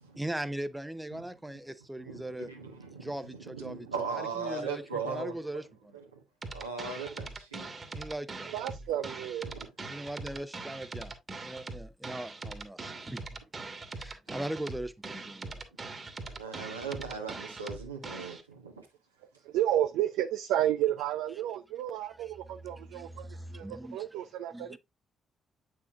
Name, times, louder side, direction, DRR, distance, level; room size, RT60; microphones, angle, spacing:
voice 1, 0.2-2.5 3.0-6.0 7.9-8.5 9.9-11.1 11.4-13.3 14.0-15.6 22.2-22.3 22.6-24.1 24.5-24.8, right 1 dB, 10° right, 0.7 m, -39 dB
voice 2, 2.0-5.4 5.9-6.2 6.5-7.7 9.5-9.7 16.0-18.8, right 5 dB, 90° right, 1.2 m, -39 dB
sound 1, 6.4-18.4, right 3 dB, 35° right, 1.5 m, -42 dB
voice 3, 8.5-9.5 19.4-23.3 23.5-24.8, right 12 dB, 70° right, 0.4 m, -31 dB
8.5 x 6.3 x 2.4 m
figure-of-eight pair, 40°, 0 cm